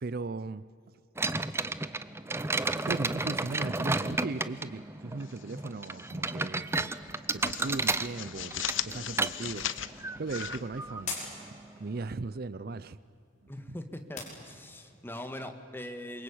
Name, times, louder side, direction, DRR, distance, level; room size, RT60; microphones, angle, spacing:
voice 1, 0.0-0.6 2.8-6.9 7.3-9.7 10.2-11.2 11.5-13.0 13.4-13.5, right 3 dB, 50° right, 17 dB, 0.5 m, -38 dB
sound 1, 1.2-12.1, right 2 dB, 15° right, 0.7 m, -33 dB
sound 2, 5.2-6.1 6.4-6.6 7.0-11.5, left 11 dB, 80° left, 0.8 m, -39 dB
sound 3, 9.5-15.0, left 4 dB, 40° left, 5.8 m, -46 dB
voice 2, 13.5-16.2, left 1 dB, 10° left, 7 dB, 1.8 m, -41 dB
27.5 x 23.5 x 8.7 m, 2.6 s
head